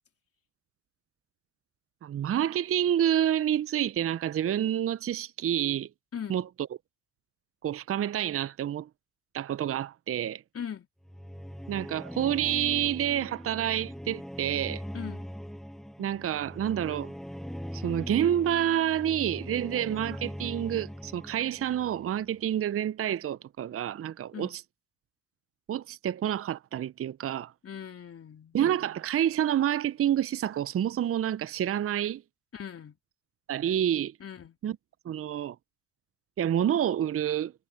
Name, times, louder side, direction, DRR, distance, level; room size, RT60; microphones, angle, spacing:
voice 1, 2.0-5.9 6.3-6.4 7.6-8.9 9.3-10.4 11.7-14.8 16.0-17.1 17.7-24.6 25.7-27.5 28.5-32.2 33.5-34.1 34.6-34.8 35.0-35.6 36.4-37.5, right 10 dB, 40° right, 0.8 m, -28 dB
voice 2, 10.5-10.9 14.9-15.3 24.3-24.6 27.6-28.6 32.5-33.0 34.2-34.6, left 8 dB, 40° left, 3.5 m, -40 dB
sound 1, 11.0-22.4, equal, ahead, 8.0 m, -41 dB
hypercardioid pair, 60°, 35 cm